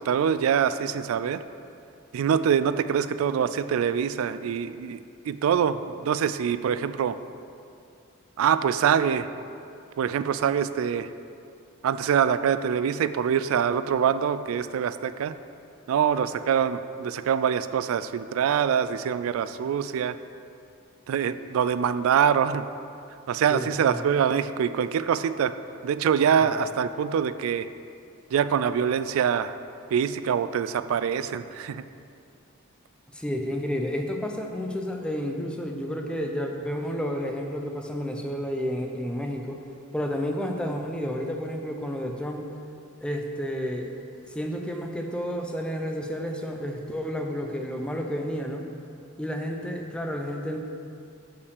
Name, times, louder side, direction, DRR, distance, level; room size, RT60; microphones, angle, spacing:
voice 1, 0.0-1.4 2.1-5.0 5.2-7.2 8.4-9.3 10.0-11.1 11.8-15.3 15.9-20.2 21.1-22.7 23.3-25.5 25.8-27.7 28.3-29.5 29.9-31.8, right 8 dB, 80° right, 13 dB, 0.3 m, -24 dB
voice 2, 23.5-24.0 26.4-26.5 33.1-39.6 39.9-42.5 43.0-43.9 44.2-48.7 49.2-50.6, equal, 5° left, 2 dB, 0.5 m, -31 dB
5.5 x 5.1 x 6.5 m, 2.5 s
head